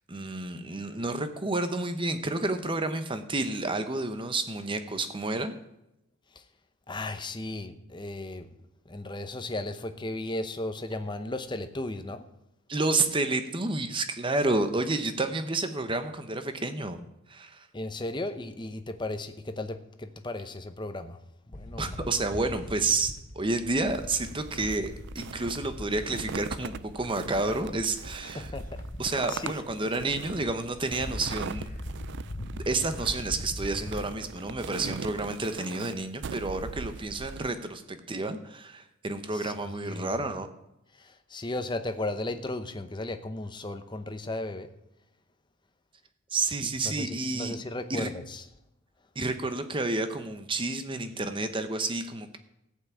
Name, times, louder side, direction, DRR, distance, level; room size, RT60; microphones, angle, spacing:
voice 1, 0.1-5.6 12.7-17.0 17.3-17.7 21.8-28.5 29.0-31.8 32.5-40.5 46.3-47.6 47.9-48.1 49.2-52.4, right 2 dB, 25° right, 9 dB, 0.8 m, -30 dB
voice 2, 6.9-8.5 8.9-12.3 17.7-21.2 21.5-22.1 28.4-28.8 29.3-29.6 39.3-39.5 39.8-40.1 41.0-44.7 46.8-48.4, left 2 dB, 20° left, 9 dB, 0.8 m, -35 dB
sound 1, 21.5-35.3, left 1 dB, 35° left, 1.1 m, -41 dB
sound 2, 23.9-37.5, right 6 dB, 55° right, 0.4 m, -41 dB
14.5 x 5.9 x 8.5 m, 0.85 s
head